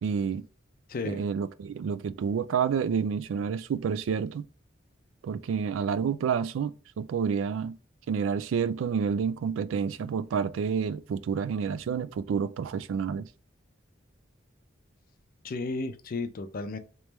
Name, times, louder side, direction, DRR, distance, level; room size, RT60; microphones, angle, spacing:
voice 1, 0.0-0.4 1.0-4.4 5.2-7.8 8.1-13.3, right 6 dB, 85° right, 0.3 m, -29 dB
voice 2, 0.9-1.2 15.4-16.8, left 3 dB, 50° left, 0.5 m, -33 dB
3.3 x 3.0 x 3.1 m
head